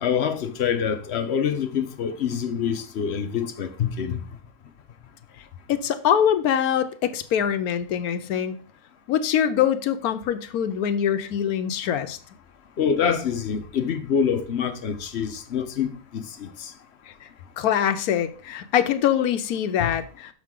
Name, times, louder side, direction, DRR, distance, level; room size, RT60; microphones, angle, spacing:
voice 1, 0.0-4.2 12.8-16.7 19.8-19.9, left 7 dB, 55° left, 0.8 m, -26 dB
voice 2, 5.7-8.6 9.1-12.2 17.1-17.3 17.6-20.3, left 9 dB, 80° left, 1.2 m, -23 dB
6.3 x 6.1 x 3.7 m
omnidirectional pair, 1.6 m